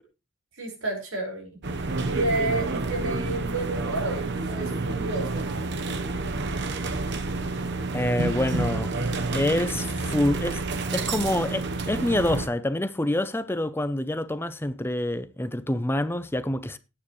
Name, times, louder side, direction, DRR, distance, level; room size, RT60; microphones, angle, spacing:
voice 1, 0.6-1.5 2.0-5.5, right 2 dB, 80° right, 5.2 m, -30 dB
sound 1, 1.6-12.5, right 3 dB, 55° right, 1.0 m, -29 dB
voice 2, 7.9-8.9 9.3-16.8, left 1 dB, 10° left, 0.6 m, -27 dB
17.0 x 8.9 x 3.2 m
head